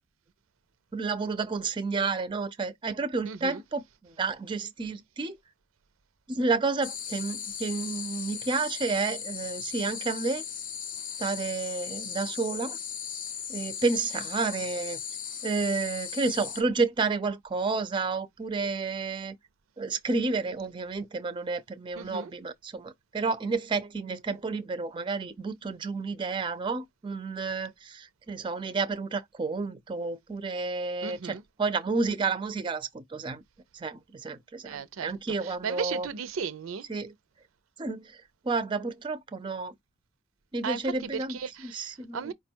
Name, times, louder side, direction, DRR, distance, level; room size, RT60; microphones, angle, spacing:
voice 1, 0.9-5.4 6.3-10.4 11.2-12.8 13.5-15.0 15.4-19.4 19.8-33.4 33.7-36.1 36.9-37.1 37.8-38.2 38.4-39.8 40.5-41.4 41.6-42.3, right 4 dB, 25° right, 0.4 m, -31 dB
voice 2, 3.2-3.6 22.0-22.3 31.0-31.4 34.6-35.1 35.4-36.9 40.6-42.3, right 6 dB, 85° right, 0.5 m, -36 dB
sound 1, 6.8-16.6, left 8 dB, 45° left, 0.6 m, -37 dB
4.7 x 2.2 x 4.4 m
head